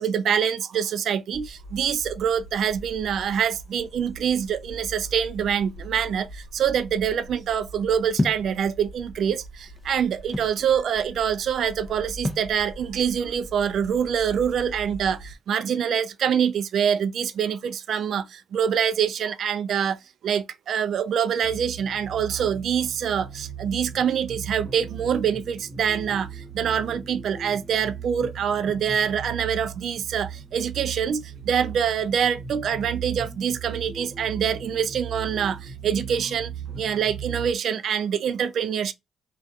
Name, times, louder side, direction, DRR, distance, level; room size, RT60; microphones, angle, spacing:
voice 1, 0.0-20.0 20.2-26.3 26.5-36.5 36.8-38.9, right 8 dB, 65° right, 0.3 m, -25 dB
sound 1, 1.3-15.4, right 1 dB, 65° left, 1.0 m, -43 dB
sound 2, 8.2-8.5 9.4-10.6 12.2-12.5, left 2 dB, 20° left, 0.6 m, -28 dB
sound 3, 21.4-37.5, right 7 dB, 20° right, 1.0 m, -37 dB
2.5 x 2.3 x 2.3 m
cardioid pair, 90°, 0 cm